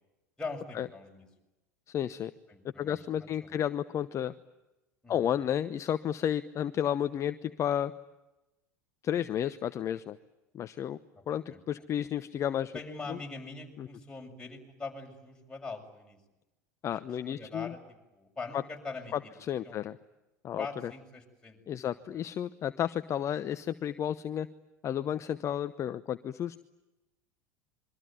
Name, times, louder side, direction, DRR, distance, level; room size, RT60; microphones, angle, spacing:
voice 1, 0.4-1.2 2.5-3.6 5.0-5.3 11.5-11.6 12.7-16.2 17.2-17.8 18.1-19.4 19.6-19.8 20.6-21.6, left 3 dB, 10° left, 0 dB, 6.9 m, -42 dB
voice 2, 1.9-2.3 2.8-4.3 5.1-7.9 9.0-10.2 10.5-11.0 11.3-12.7 13.1-13.2 13.8-13.9 16.8-17.7 18.5-18.6 19.1-20.0 20.4-20.9 21.7-24.5 24.8-26.6, left 10 dB, 35° left, 12 dB, 0.9 m, -32 dB
27.0 x 23.5 x 9.4 m, 0.99 s
figure-of-eight pair, 80°, 9 cm